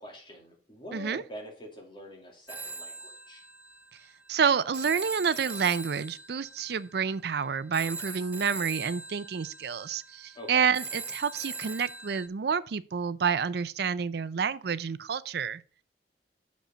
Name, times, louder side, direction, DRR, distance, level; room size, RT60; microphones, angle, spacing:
voice 1, 0.0-3.4 10.3-10.7, equal, 30° left, 2.5 m, -45 dB
voice 2, 0.9-1.2 4.3-15.6, right 6 dB, 65° right, 0.5 m, -29 dB
Telephone, 2.5-12.3, right 4 dB, 10° right, 0.4 m, -41 dB
6.5 x 5.2 x 5.6 m
head